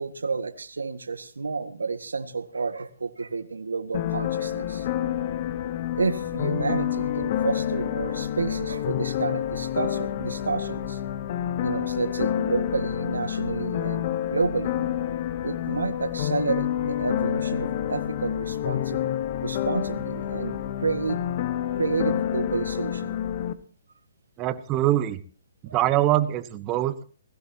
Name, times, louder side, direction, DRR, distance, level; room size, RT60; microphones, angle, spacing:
voice 1, 0.0-4.9 5.9-11.0 11.6-14.8 15.4-19.1 19.4-21.2 21.7-23.2 25.7-25.8, right 4 dB, 85° right, 11 dB, 1.6 m, -30 dB
sound 1, 3.9-23.5, left 11 dB, 45° left, 1.2 m, -28 dB
voice 2, 24.4-25.2 25.6-27.0, right 14 dB, 25° right, 13 dB, 1.2 m, -23 dB
20.5 x 16.0 x 2.8 m, 0.39 s
hypercardioid pair, 140°, 0 cm